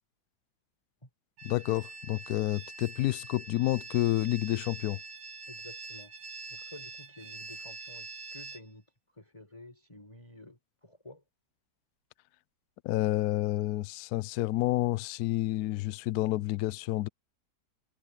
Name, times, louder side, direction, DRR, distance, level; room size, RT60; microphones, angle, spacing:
voice 1, 1.4-5.0 12.8-17.1, left 17 dB, 75° left, 0.9 m, -29 dB
sound 1, 1.4-8.6, right 3 dB, 90° right, 2.4 m, -45 dB
voice 2, 5.5-6.1 6.5-8.8 9.1-11.2, left 2 dB, 15° left, 5.1 m, -51 dB
omnidirectional pair, 2.1 m